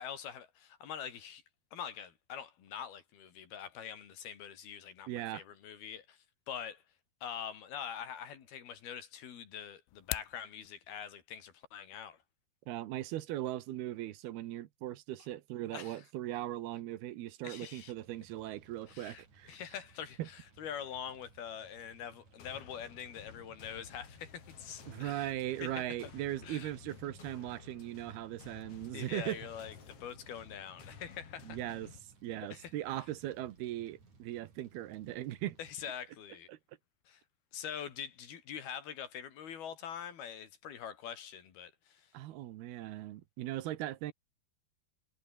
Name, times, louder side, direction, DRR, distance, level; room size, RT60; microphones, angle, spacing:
voice 1, 0.0-1.4 1.7-6.8 7.2-12.2 15.7-16.0 17.4-17.9 18.9-19.2 19.5-25.3 25.6-25.8 26.4-26.7 28.9-31.6 32.5-32.7 33.0-33.1 35.6-36.5 37.1-37.2 37.5-42.1, left 8 dB, 70° left, 4.7 m, -44 dB
voice 2, 5.1-5.4 12.7-19.6 20.2-20.3 24.9-29.4 31.4-31.9 32.2-35.6 36.5-36.6 42.1-44.1, right 14 dB, 80° right, 3.1 m, -39 dB
sound 1, 9.9-10.4, left 24 dB, 90° left, 2.6 m, -39 dB
Fire, 17.7-35.7, right 4 dB, 50° right, 7.6 m, -63 dB
sound 2, 22.4-32.0, left 7 dB, 45° left, 2.8 m, -54 dB
omnidirectional pair, 4.6 m